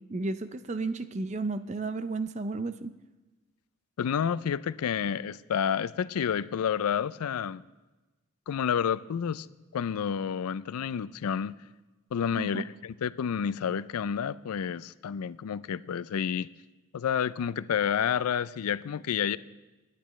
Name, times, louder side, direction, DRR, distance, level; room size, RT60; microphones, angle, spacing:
voice 1, 0.0-2.9 12.4-12.6, right 3 dB, 30° right, 0.4 m, -33 dB
voice 2, 4.0-7.6 8.5-9.5 9.7-11.6 12.1-16.5 16.9-19.4, left 8 dB, 90° left, 0.4 m, -29 dB
23.5 x 10.0 x 3.1 m
head